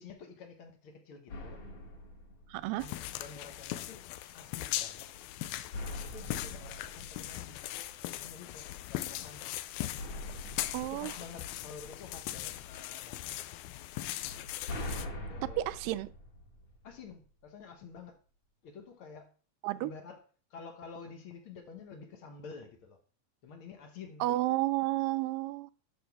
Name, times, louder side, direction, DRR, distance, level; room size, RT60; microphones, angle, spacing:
voice 1, 0.0-1.6 2.8-4.0 4.3-5.1 5.9-7.6 8.1-9.6 10.8-13.4 15.1-15.8 16.8-18.2 18.6-19.3 19.8-20.2 20.5-23.0 23.4-24.3, left 5 dB, 70° left, 1.2 m, -49 dB
sound 1, 1.3-3.2 5.7-8.1 10.0-12.2 14.2-17.2, left 1 dB, 50° left, 2.7 m, -43 dB
voice 2, 2.5-2.9 10.7-11.1 15.6-16.1 19.6-19.9 24.2-25.7, right 17 dB, 85° right, 2.2 m, -31 dB
sound 2, 2.8-15.1, left 14 dB, 90° left, 1.6 m, -40 dB
12.5 x 6.2 x 3.5 m
omnidirectional pair, 4.0 m